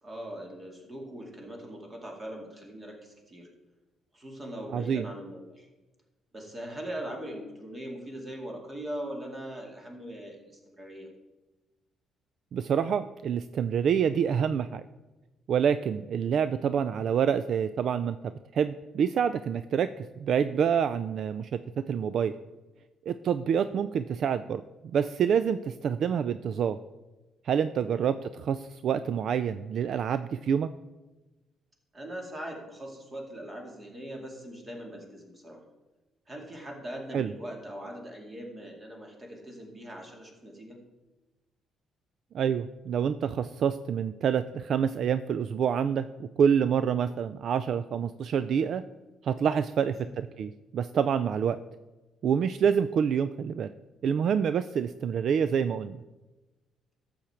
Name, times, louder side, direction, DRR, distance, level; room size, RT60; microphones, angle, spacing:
voice 1, 0.0-3.5 4.1-5.7 6.3-11.1 27.8-28.1 31.9-35.6 36.3-40.8 49.8-50.2, right 1 dB, 25° right, 1 dB, 2.4 m, -41 dB
voice 2, 4.7-5.0 12.5-14.8 15.5-18.2 18.5-21.5 21.9-22.3 23.1-24.6 24.9-26.8 27.4-30.7 37.1-37.3 42.3-48.8 49.2-51.6 52.2-53.7 54.0-56.0, right 7 dB, 55° right, 12 dB, 0.3 m, -27 dB
13.0 x 7.2 x 4.5 m, 1.1 s
cardioid pair, 120°, 0 cm